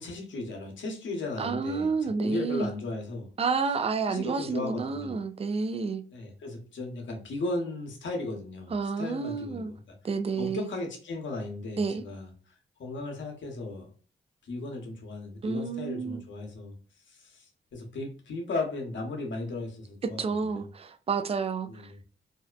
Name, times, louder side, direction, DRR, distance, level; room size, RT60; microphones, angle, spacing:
voice 1, 0.0-3.3 4.1-5.2 6.1-9.7 10.4-12.3 12.8-13.9 14.4-16.7 17.1-20.7 21.7-22.0, left 2 dB, 70° left, 0.9 m, -36 dB
voice 2, 1.4-2.7 3.4-6.0 8.7-9.7 10.0-10.7 11.8-12.0 15.4-16.2 20.2-22.1, right 5 dB, 30° right, 0.4 m, -30 dB
2.6 x 2.1 x 2.3 m
cardioid pair, 60°, 20 cm